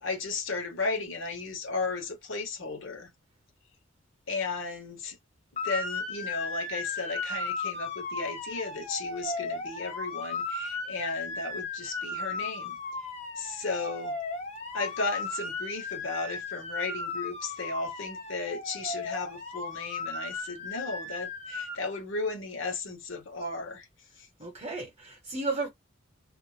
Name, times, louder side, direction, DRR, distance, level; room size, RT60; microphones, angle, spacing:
voice 1, 0.0-3.1 4.3-5.2 5.6-12.8 13.4-14.2 14.7-23.9 24.2-24.3, left 3 dB, 70° left, 0.9 m, -35 dB
Motor vehicle (road) / Siren, 5.6-21.8, left 3 dB, 35° left, 0.7 m, -36 dB
voice 2, 24.4-25.7, right 3 dB, 35° right, 0.9 m, -33 dB
2.5 x 2.0 x 3.1 m
head